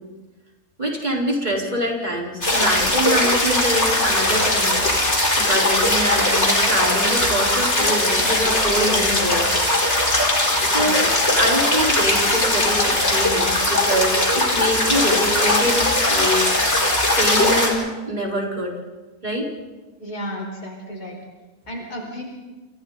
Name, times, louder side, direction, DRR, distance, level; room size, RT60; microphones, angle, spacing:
voice 1, 0.8-4.8 5.4-9.5 10.7-16.6 17.1-18.8 19.2-19.5, equal, 30° right, -2 dB, 4.9 m, -25 dB
sound 1, 2.4-17.7, left 1 dB, 45° left, 4.9 m, -19 dB
voice 2, 10.7-11.1 20.0-21.2 21.7-22.2, equal, 80° left, 0 dB, 5.2 m, -32 dB
29.0 x 28.0 x 4.2 m, 1.2 s
omnidirectional pair, 1.6 m